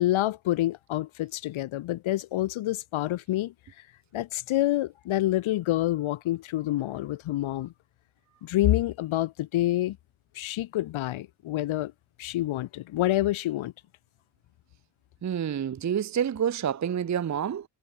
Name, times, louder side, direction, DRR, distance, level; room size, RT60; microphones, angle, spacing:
voice 1, 0.0-3.5 4.1-7.7 8.4-10.0 10.3-11.9 12.2-13.7, left 15 dB, 70° left, 0.8 m, -27 dB
voice 2, 15.2-17.6, right 8 dB, 35° right, 0.8 m, -28 dB
cardioid pair, 135°, 49 cm